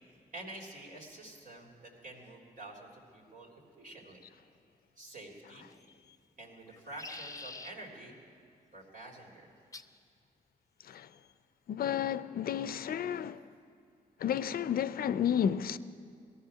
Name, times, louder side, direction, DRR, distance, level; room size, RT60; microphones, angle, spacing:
voice 1, 0.3-4.2 5.0-5.7 6.4-8.1 8.7-9.5, right 2 dB, 60° right, 3.3 m, -48 dB
sound 1, 5.7-6.1 6.7-7.7 9.7-10.0 10.9-11.3, left 3 dB, 20° left, 0.7 m, -47 dB
voice 2, 11.7-13.4 14.2-15.8, left 9 dB, 65° left, 0.5 m, -31 dB
18.5 x 13.5 x 5.7 m
cardioid pair, 60°, 16 cm